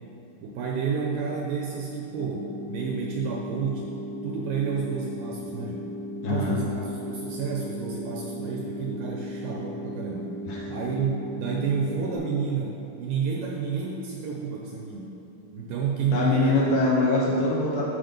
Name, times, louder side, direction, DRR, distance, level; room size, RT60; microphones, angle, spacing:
voice 1, 0.4-4.0 4.2-5.9 6.2-10.3 10.7-15.1 15.5-16.6, right 6 dB, 85° right, -1 dB, 2.0 m, -30 dB
sound 1, 2.2-12.2, equal, 30° right, 0.8 m, -36 dB
voice 2, 6.2-6.6 10.5-10.7 16.1-17.8, left 2 dB, 70° left, -5 dB, 2.2 m, -23 dB
11.5 x 4.3 x 5.2 m, 3.0 s
omnidirectional pair, 4.6 m